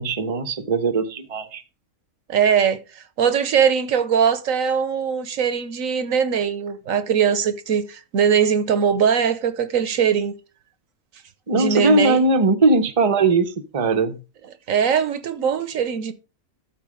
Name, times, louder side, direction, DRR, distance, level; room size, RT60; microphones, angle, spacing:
voice 1, 0.0-1.6 11.5-14.2, right 3 dB, 30° right, 0.7 m, -20 dB
voice 2, 2.3-10.3 11.5-12.2 14.7-16.1, right 7 dB, 70° right, 1.3 m, -21 dB
13.0 x 4.5 x 4.9 m
omnidirectional pair, 1.5 m